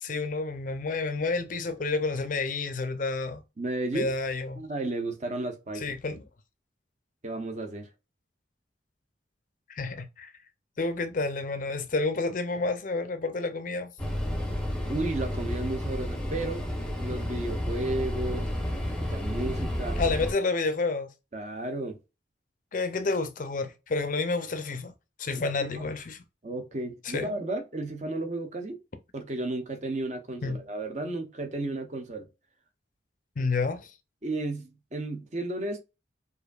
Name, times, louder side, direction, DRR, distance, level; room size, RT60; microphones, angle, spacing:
voice 1, 0.0-3.4 3.9-4.6 5.8-6.2 9.7-10.3 10.8-13.9 20.0-21.1 22.7-24.9 25.2-26.2 27.1-27.3 30.4-30.6 33.4-33.9, left 3 dB, 45° left, 0.5 m, -29 dB
voice 2, 3.6-4.1 4.6-5.9 7.2-7.9 14.9-16.7 17.0-18.6 19.0-20.0 21.3-22.0 25.4-25.8 26.4-28.8 29.1-32.3 34.2-35.8, right 2 dB, 40° right, 0.7 m, -33 dB
sound 1, 14.0-20.3, left 1 dB, 5° left, 0.7 m, -31 dB
4.8 x 2.6 x 2.3 m
head